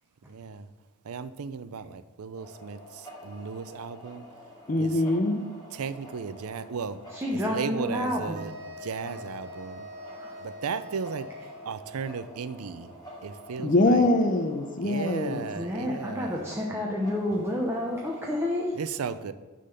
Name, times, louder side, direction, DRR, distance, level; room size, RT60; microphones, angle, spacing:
voice 1, 0.3-0.7 1.0-4.3 4.8-5.0 5.7-7.0 7.3-9.9 10.4-11.3 11.6-12.9 13.2-14.1 14.8-16.5 18.7-19.3, right 5 dB, 85° right, 13 dB, 0.5 m, -35 dB
sound 1, 2.3-18.6, equal, 20° left, 2.3 m, -48 dB
voice 2, 4.7-5.4 13.6-15.4, left 2 dB, 40° left, 6 dB, 0.7 m, -23 dB
voice 3, 7.1-8.4 10.2-10.3 15.6-18.7, left 1 dB, 10° right, -2 dB, 0.8 m, -29 dB
sound 2, 8.3-12.0, left 1 dB, 50° right, 1.5 m, -43 dB
9.9 x 3.9 x 6.7 m, 1.2 s
head